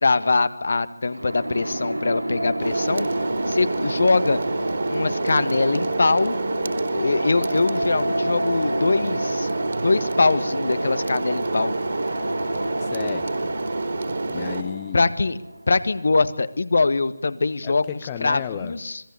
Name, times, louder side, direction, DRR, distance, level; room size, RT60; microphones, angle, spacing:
voice 1, 0.0-3.1 3.5-4.4 4.9-6.4 6.9-9.5 9.8-11.8 14.3-14.5 14.9-15.4 15.7-19.0, left 3 dB, 50° left, 14 dB, 1.7 m, -22 dB
sound 1, 1.1-15.8, right 1 dB, 80° right, 3.3 m, -29 dB
sound 2, 2.6-14.6, right 3 dB, 45° right, 3.8 m, -28 dB
voice 2, 12.8-13.5 14.3-15.0 17.6-18.8, left 9 dB, 20° left, 11 dB, 1.1 m, -33 dB
26.5 x 20.0 x 8.5 m, 0.78 s
figure-of-eight pair, 155°, 0 cm